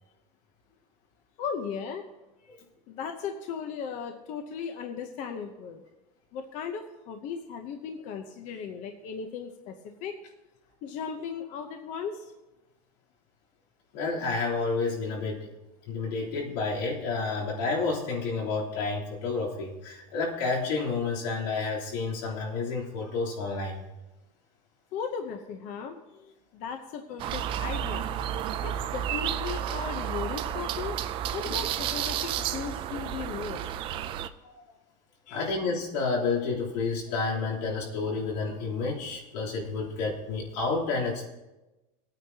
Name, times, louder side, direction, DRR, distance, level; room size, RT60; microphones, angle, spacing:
voice 1, 1.4-2.0 2.9-5.8 6.3-9.7 10.0-10.2 10.8-12.2 24.9-28.1 28.6-30.9 31.3-33.6 35.3-35.5, left 6 dB, 35° left, 5 dB, 0.8 m, -37 dB
voice 2, 13.9-15.5 15.9-23.8 31.4-31.6 34.4-34.6 35.3-41.2, left 4 dB, 85° left, -4 dB, 3.3 m, -30 dB
sound 1, 27.2-34.3, right 10 dB, 25° right, 0.3 m, -31 dB
19.5 x 9.1 x 2.8 m, 1.0 s
supercardioid pair, 175°, 21 cm